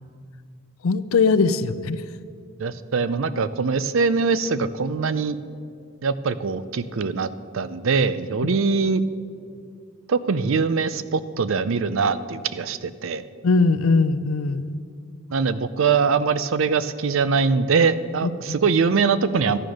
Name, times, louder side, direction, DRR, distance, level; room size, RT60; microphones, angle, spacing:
voice 1, 0.8-2.0 13.4-14.8 18.2-18.5, left 4 dB, 75° left, 14 dB, 0.5 m, -20 dB
voice 2, 2.6-5.4 6.0-7.3 7.5-9.0 10.1-13.2 15.3-19.6, right 5 dB, 65° right, 14 dB, 0.5 m, -22 dB
13.0 x 8.9 x 6.4 m, 2.3 s
head